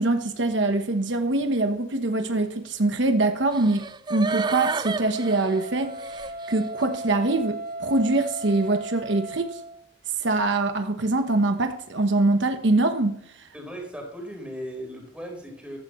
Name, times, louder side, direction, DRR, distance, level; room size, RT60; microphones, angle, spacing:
voice 1, 0.0-3.8 4.1-9.6 10.2-13.5, right 2 dB, 75° right, 1.1 m, -24 dB
sound 1, 3.5-6.6 7.0-7.1, right 4 dB, 25° right, 0.5 m, -30 dB
Wind instrument woodwind instrument, 5.2-9.9, right 2 dB, 50° right, 1.0 m, -36 dB
voice 2, 13.5-15.8, equal, 5° right, 4.5 m, -37 dB
14.5 x 13.0 x 3.2 m
head